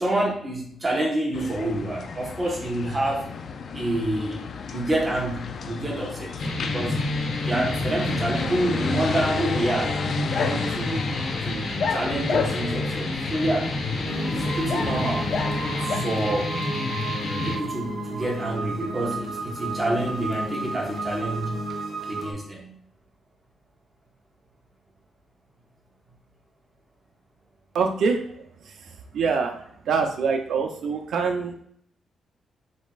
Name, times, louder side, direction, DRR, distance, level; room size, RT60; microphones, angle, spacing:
voice 1, 0.0-3.3 3.7-4.4 4.7-6.4 6.6-7.0 7.4-10.0 10.4-11.1 11.4-11.6 11.9-15.3 16.0-16.5 17.5-21.6 22.1-22.7, right 1 dB, 20° right, -2 dB, 1.2 m, -27 dB
sound 1, 1.3-16.0, left 5 dB, 55° left, 0.4 m, -32 dB
sound 2, 6.4-17.6, left 2 dB, 75° left, 1.2 m, -29 dB
sound 3, 14.1-22.3, right 2 dB, 45° right, 0.8 m, -33 dB
voice 2, 27.7-31.6, right 5 dB, 80° right, 3 dB, 0.6 m, -26 dB
5.2 x 4.2 x 2.4 m, 0.64 s
cardioid pair, 130°, 0 cm